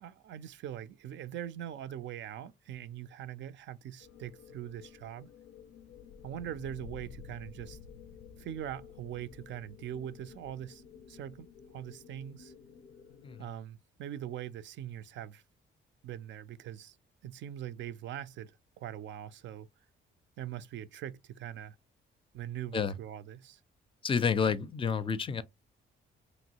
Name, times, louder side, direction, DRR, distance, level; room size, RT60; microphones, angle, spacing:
voice 1, 0.0-5.3 6.2-7.8 8.4-12.5 13.4-15.4 16.0-17.0 17.2-19.7 20.4-21.8 22.3-23.6, right 11 dB, 70° right, 0.4 m, -42 dB
sound 1, 4.0-13.4, left 6 dB, 90° left, 0.5 m, -52 dB
voice 2, 24.0-25.4, left 6 dB, 25° left, 0.4 m, -29 dB
3.0 x 2.6 x 2.8 m
cardioid pair, 90°, 20 cm